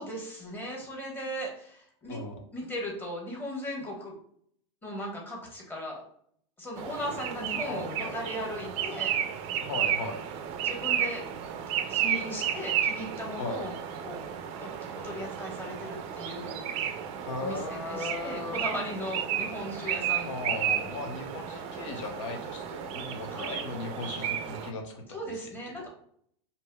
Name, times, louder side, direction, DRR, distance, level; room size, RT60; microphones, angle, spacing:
voice 1, 0.0-2.2 2.5-4.2 4.8-6.0 6.6-9.1 10.6-11.2 11.9-13.7 14.0-14.2 14.6-17.0 17.4-20.3 23.3-23.5 25.1-25.9, equal, 15° left, -2 dB, 1.1 m, -37 dB
voice 2, 2.1-2.4 7.7-8.1 9.6-10.2 13.4-13.6 17.3-18.7 20.2-25.9, left 3 dB, 85° left, 3 dB, 0.9 m, -37 dB
sound 1, 6.8-24.7, right 9 dB, 40° right, 0.4 m, -33 dB
5.3 x 2.9 x 2.2 m, 0.65 s
supercardioid pair, 140°, 15 cm